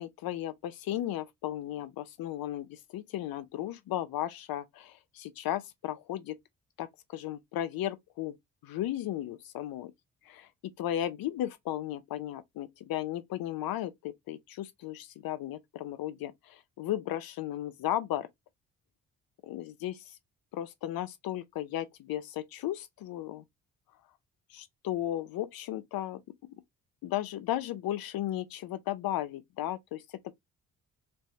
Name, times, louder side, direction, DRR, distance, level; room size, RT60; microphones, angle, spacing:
voice 1, 0.0-6.3 6.8-8.4 8.6-9.9 10.3-10.5 10.8-18.3 19.4-20.2 20.5-23.4 24.5-26.2 27.0-30.3, left 12 dB, 65° left, 0.7 m, -35 dB
3.3 x 2.7 x 3.1 m
hypercardioid pair, 45°, 38 cm